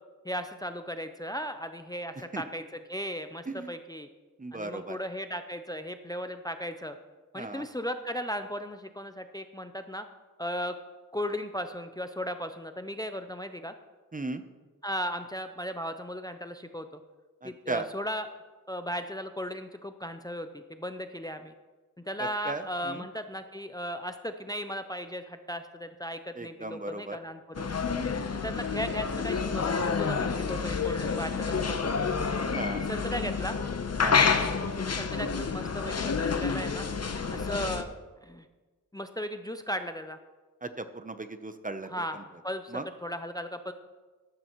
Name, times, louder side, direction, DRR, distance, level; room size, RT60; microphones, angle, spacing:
voice 1, 0.2-4.1 4.5-7.0 7.3-10.1 10.4-10.8 11.1-13.7 14.8-17.0 17.4-18.3 18.7-21.5 22.0-27.7 28.4-32.1 32.7-33.6 34.9-36.9 37.3-37.9 38.2-38.4 38.9-40.2 41.9-42.2 42.4-43.7, equal, 10° left, 8 dB, 0.6 m, -36 dB
voice 2, 4.4-5.0 7.3-7.6 14.1-14.4 17.4-17.9 22.2-23.1 26.3-27.2 32.5-32.9 34.0-34.3 40.6-42.2 42.7-42.8, right 2 dB, 25° right, 9 dB, 0.7 m, -36 dB
sound 1, 27.5-37.8, left 5 dB, 50° left, 0.9 m, -29 dB
13.5 x 12.5 x 3.1 m, 1.3 s
wide cardioid pair, 70°, 34 cm